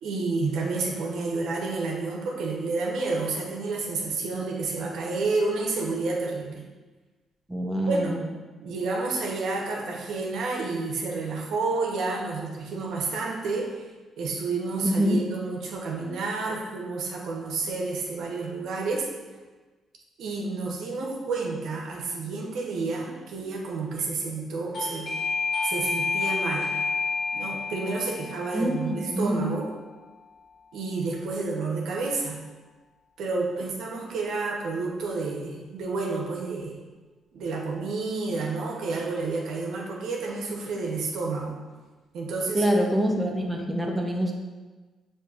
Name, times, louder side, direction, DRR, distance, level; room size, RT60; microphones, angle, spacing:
voice 1, 0.0-6.6 7.9-8.4 8.6-13.8 14.2-19.1 20.2-25.1 25.6-26.7 27.3-29.7 30.7-32.4 33.2-36.8 37.3-41.6 42.1-42.6, right 3 dB, 75° right, -1 dB, 0.8 m, -30 dB
voice 2, 7.5-8.3 14.8-15.2 28.5-29.4 42.5-44.3, equal, 10° right, 0 dB, 0.6 m, -25 dB
Doorbell, 24.7-31.2, left 4 dB, 55° left, 0.8 m, -31 dB
6.4 x 2.7 x 2.4 m, 1.3 s
cardioid pair, 90°, 0 cm